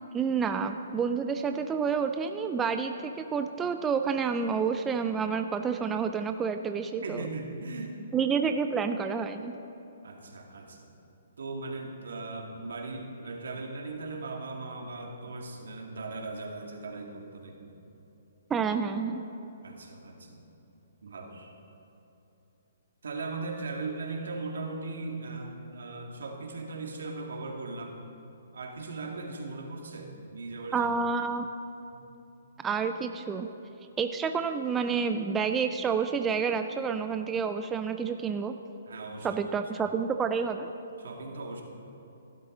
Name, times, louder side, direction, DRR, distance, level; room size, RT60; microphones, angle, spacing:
voice 1, 0.1-7.2 8.1-9.6 18.5-19.2 30.7-31.5 32.6-33.5 34.0-38.5 39.2-40.7, right 6 dB, 10° right, 7 dB, 0.3 m, -29 dB
voice 2, 7.0-8.0 10.0-10.9 11.4-17.7 19.6-20.5 21.0-21.5 23.0-28.0 28.5-30.9 31.9-32.0 38.9-39.4 41.0-41.6, right 3 dB, 80° right, 1 dB, 1.9 m, -38 dB
16.0 x 12.0 x 3.8 m, 2.9 s
hypercardioid pair, 160°, 0 cm